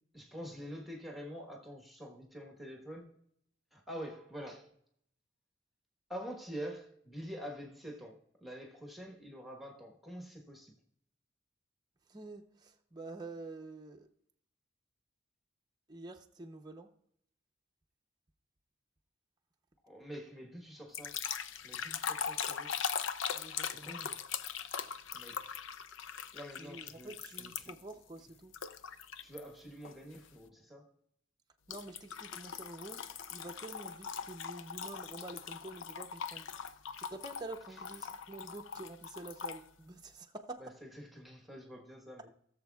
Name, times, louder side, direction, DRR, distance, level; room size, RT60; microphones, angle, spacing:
voice 1, 0.1-3.2 3.7-4.8 6.1-10.8 19.8-21.2 21.6-22.7 23.7-24.2 25.1-25.6 26.3-27.8 29.2-30.9 37.7-37.8 40.6-42.3, equal, ahead, 1.3 m, -46 dB
voice 2, 12.1-14.1 15.9-16.9 23.3-24.0 26.6-28.5 31.7-33.0 33.3-36.5 37.0-40.7, right 2 dB, 20° right, 0.7 m, -48 dB
sound 1, 20.9-27.9 28.5-29.4 29.8-30.1 31.7-39.6, left 7 dB, 70° left, 0.5 m, -40 dB
18.0 x 7.0 x 2.4 m
head